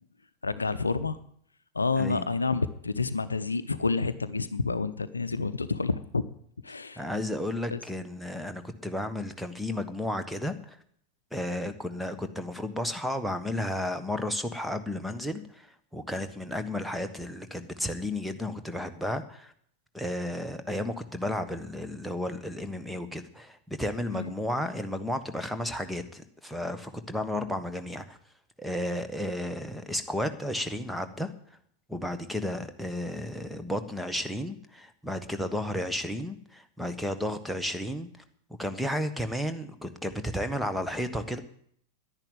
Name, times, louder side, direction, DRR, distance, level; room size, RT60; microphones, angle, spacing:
voice 1, 0.4-1.2 1.7-6.2 6.6-7.0 7.7-7.8 24.1-24.3, left 4 dB, 80° left, 13 dB, 0.7 m, -29 dB
voice 2, 7.0-10.8 11.3-15.7 15.9-19.5 19.9-28.2 28.6-31.3 31.9-38.1 38.6-41.4, left 1 dB, ahead, 8 dB, 1.4 m, -33 dB
10.5 x 10.5 x 9.2 m, 0.65 s
figure-of-eight pair, 90°, 0 cm